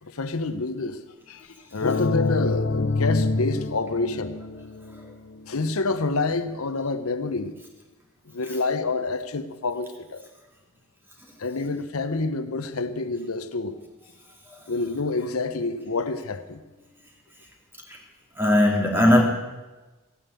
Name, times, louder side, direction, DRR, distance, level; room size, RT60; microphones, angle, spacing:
voice 1, 0.0-1.0 1.3-4.4 5.5-7.6 8.3-10.2 11.4-13.8 14.7-16.6, left 3 dB, 85° left, 10 dB, 0.8 m, -28 dB
sound 1, 1.8-5.4, left 3 dB, 50° left, 0.7 m, -26 dB
voice 2, 18.4-19.2, left 1 dB, 10° right, 0 dB, 2.2 m, -18 dB
14.5 x 9.1 x 8.2 m, 1.2 s
head